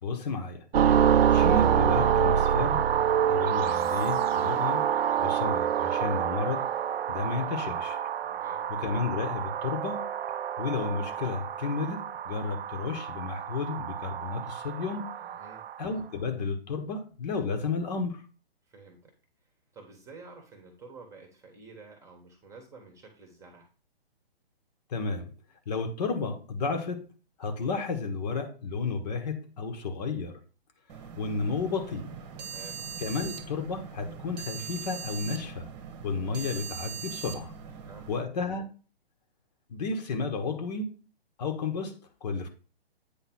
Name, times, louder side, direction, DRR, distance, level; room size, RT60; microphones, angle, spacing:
voice 1, 0.0-0.6 1.3-2.9 3.3-4.9 5.2-6.7 7.1-8.0 8.7-10.1 10.6-15.0 15.8-18.2 24.9-25.3 25.7-27.1 27.4-30.4 31.2-32.1 33.0-35.7 36.0-37.5 38.1-38.7 39.7-41.0 41.4-42.5, left 4 dB, 40° left, 1.4 m, -32 dB
sound 1, 0.7-15.8, right 9 dB, 75° right, 0.6 m, -27 dB
voice 2, 8.2-8.7 15.2-15.6 18.7-19.1 19.7-23.7 32.4-32.8 37.7-38.1, right 4 dB, 10° right, 1.3 m, -50 dB
sound 2, 30.9-38.2, right 7 dB, 30° right, 1.2 m, -41 dB
8.7 x 3.2 x 6.1 m
hypercardioid pair, 145°, 31 cm